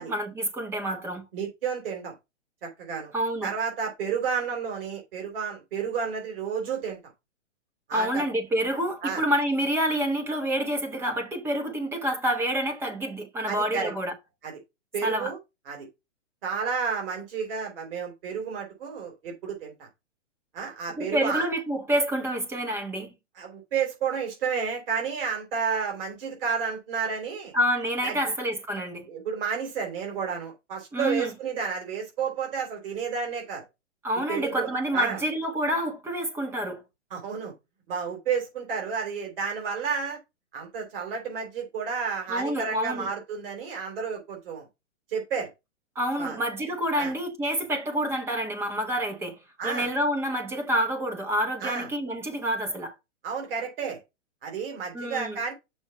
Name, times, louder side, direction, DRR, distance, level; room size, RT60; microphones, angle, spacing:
voice 1, 0.0-1.2 3.1-3.5 7.9-14.1 15.0-15.3 21.0-23.1 27.5-29.1 30.9-31.3 34.0-36.8 42.3-43.1 46.0-49.4 49.6-52.9 54.9-55.4, equal, 5° right, 1.0 m, -28 dB
voice 2, 1.3-2.1 2.6-3.1 3.4-7.0 7.9-8.2 9.0-9.2 13.5-13.9 14.4-14.5 14.9-15.4 15.7-15.9 16.4-19.9 20.5-21.5 23.4-27.5 28.0-28.2 29.1-33.6 34.3-35.2 37.1-37.5 37.9-40.2 40.5-44.7 45.1-45.5 46.2-46.4 47.0-47.1 49.6-49.9 51.6-51.9 53.2-54.0 54.4-55.5, right 6 dB, 50° right, 3.6 m, -31 dB
6.3 x 4.5 x 5.7 m
hypercardioid pair, 150°, 36 cm